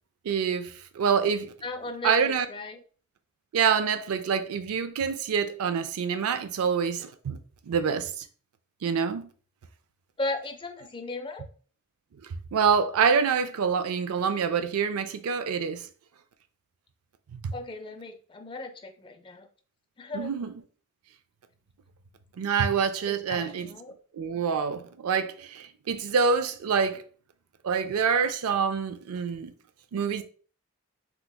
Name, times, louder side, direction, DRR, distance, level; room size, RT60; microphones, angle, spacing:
voice 1, 0.2-1.5 2.0-2.5 3.5-7.4 7.7-8.2 8.8-9.3 12.5-15.9 17.3-17.5 20.1-20.5 22.4-23.7 24.1-27.0 27.6-29.5 29.9-30.2, right 6 dB, 85° right, 0.4 m, -26 dB
voice 2, 1.6-2.8 10.2-11.5 17.5-19.5 20.0-20.3 23.1-23.9, left 2 dB, 25° left, 0.4 m, -36 dB
3.4 x 2.9 x 2.2 m
head